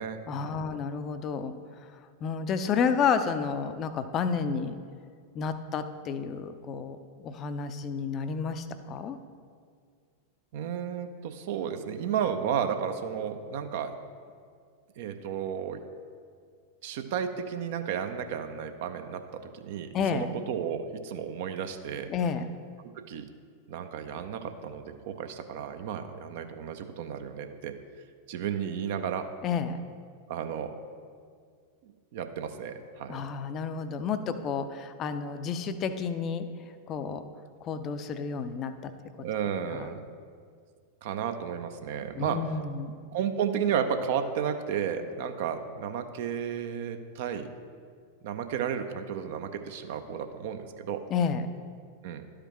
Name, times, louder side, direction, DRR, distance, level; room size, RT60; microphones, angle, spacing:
voice 1, 0.3-1.5 2.2-4.7 5.3-9.2 19.9-20.3 22.1-22.5 29.4-29.8 33.1-36.5 36.9-37.2 37.6-38.9 39.2-39.3 39.7-39.9 42.2-43.0 51.1-51.5, left 6 dB, 30° left, 10 dB, 0.4 m, -30 dB
voice 2, 10.5-13.9 15.0-15.8 16.8-19.2 19.5-22.1 22.9-23.2 23.7-27.7 28.3-29.3 30.3-30.7 31.8-33.2 39.2-40.0 41.0-42.4 43.1-47.5 48.2-51.0 52.0-52.2, right 8 dB, 50° right, 8 dB, 0.5 m, -33 dB
12.0 x 4.9 x 3.0 m, 2.1 s
figure-of-eight pair, 90°, 0 cm